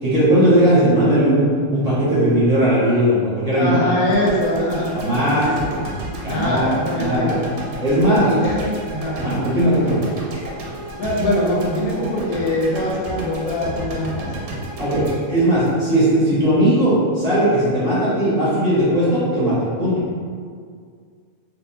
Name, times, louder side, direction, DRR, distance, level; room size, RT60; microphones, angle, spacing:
voice 1, 0.0-3.8 4.9-5.5 6.2-6.7 6.9-7.3 7.8-8.3 9.2-10.0 14.8-20.2, right 1 dB, 35° right, -10 dB, 0.8 m, -18 dB
voice 2, 3.5-5.7 6.2-7.4 8.0-9.2 11.0-14.3, left 1 dB, 85° left, -4 dB, 1.2 m, -23 dB
sound 1, 4.1-16.3, right 1 dB, 85° right, 1.1 m, -32 dB
3.6 x 2.4 x 2.7 m, 2.1 s
omnidirectional pair, 1.5 m